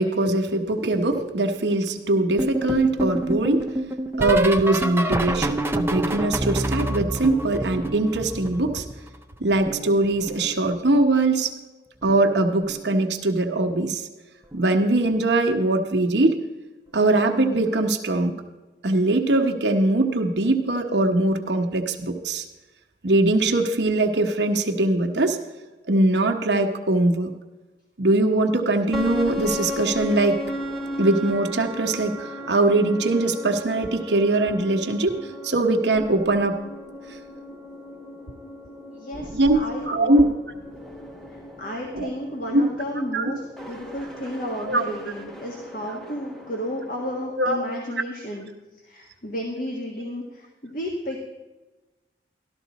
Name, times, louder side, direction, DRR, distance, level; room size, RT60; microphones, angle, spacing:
voice 1, 0.0-3.7 4.2-8.9 9.4-11.5 12.0-14.1 14.5-16.4 16.9-18.3 18.8-22.4 23.0-25.4 25.9-27.3 28.0-30.4 31.0-35.2 35.4-36.6 39.3-39.6 39.9-40.2 41.9-42.1 42.5-42.6 43.1-43.2 44.7-44.8 47.4-47.6, right 2 dB, 75° right, 4 dB, 1.1 m, -21 dB
sound 1, 2.4-9.2 9.4-11.0 12.0-12.4 12.6-13.0 14.5-14.8 15.1-15.4 16.9-17.0, right 1 dB, 15° right, 0.5 m, -28 dB
sound 2, 28.9-47.3, left 1 dB, ahead, 1.1 m, -36 dB
voice 2, 38.9-40.3 41.3-48.5 48.8-51.2, equal, 50° left, 0 dB, 1.5 m, -32 dB
13.0 x 12.5 x 4.1 m, 1.2 s
head